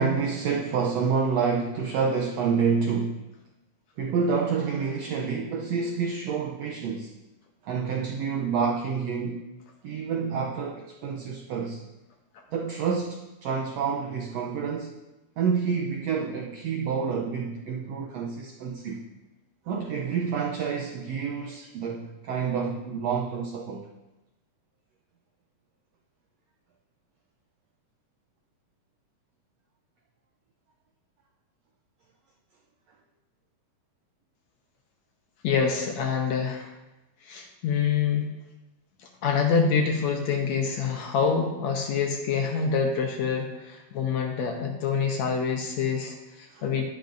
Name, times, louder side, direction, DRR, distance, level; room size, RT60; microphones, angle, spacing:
voice 1, 0.0-3.2 4.0-7.1 7.6-9.5 9.8-11.8 12.5-14.9 15.4-19.0 19.7-23.9 46.5-46.7, right 5 dB, 90° right, 1 dB, 1.5 m, -28 dB
voice 2, 35.4-36.7 37.2-38.3 39.2-46.8, left 6 dB, 70° left, 2 dB, 1.8 m, -26 dB
11.5 x 10.5 x 2.6 m, 1.0 s
omnidirectional pair, 3.8 m